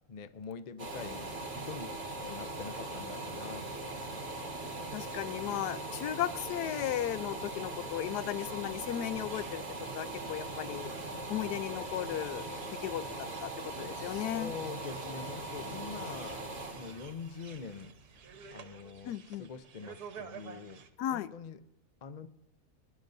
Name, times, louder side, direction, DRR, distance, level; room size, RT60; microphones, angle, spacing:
voice 1, 0.1-1.9 2.2-3.9 14.0-16.4 16.7-17.9 18.5-20.8 21.1-21.6 22.0-22.3, left 5 dB, 65° left, 12 dB, 0.4 m, -44 dB
sound 1, 0.8-18.5 18.9-19.0, right 2 dB, 40° right, 2.0 m, -40 dB
voice 2, 4.9-9.6 9.9-10.9 11.3-12.4 12.8-13.0 13.4-14.5 19.0-19.5 21.0-21.3, left 12 dB, 85° left, 15 dB, 1.2 m, -35 dB
sound 2, 9.3-20.9, right 7 dB, 75° right, 1.5 m, -53 dB
22.0 x 11.5 x 2.6 m, 0.92 s
omnidirectional pair, 1.7 m